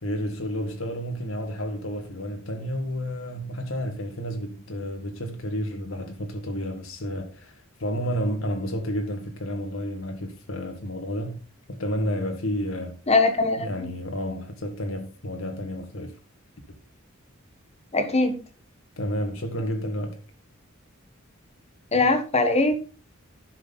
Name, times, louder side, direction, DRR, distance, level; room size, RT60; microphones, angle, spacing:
voice 1, 0.0-11.4 11.7-13.0 13.6-16.2 19.0-20.2 21.9-22.0, equal, 75° left, 1.8 m, -31 dB
voice 2, 13.1-13.7 17.9-18.4 21.9-22.7, left 3 dB, 30° left, 1.4 m, -21 dB
10.5 x 6.4 x 4.0 m
head